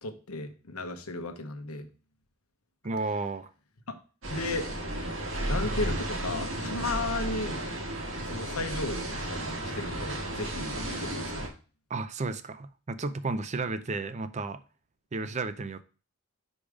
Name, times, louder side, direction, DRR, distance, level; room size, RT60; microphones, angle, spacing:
voice 1, 0.0-1.9 3.9-4.0 4.3-4.7 5.4-7.6 8.3-11.5, left 2 dB, 90° left, 1.1 m, -35 dB
voice 2, 2.8-3.5 11.9-14.6 15.1-15.8, right 3 dB, 30° right, 0.5 m, -33 dB
sound 1, 4.2-11.5, right 1 dB, 60° right, 1.9 m, -33 dB
5.2 x 5.2 x 4.8 m
head